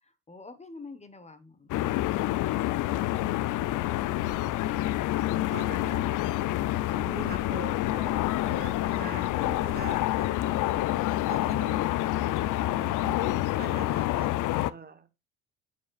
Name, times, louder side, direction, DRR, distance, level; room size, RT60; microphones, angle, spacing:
voice 1, 0.0-1.9, left 3 dB, 20° left, 12 dB, 1.2 m, -48 dB
sound 1, 1.7-14.7, left 15 dB, 55° left, 0.5 m, -28 dB
sound 2, 2.1-11.7, left 7 dB, 80° left, 1.8 m, -49 dB
voice 2, 4.3-5.0 5.3-6.1 6.9-10.9 11.3-15.1, right 5 dB, 25° right, 12 dB, 1.2 m, -44 dB
9.3 x 7.5 x 2.4 m, 0.26 s
supercardioid pair, 80°, 36 cm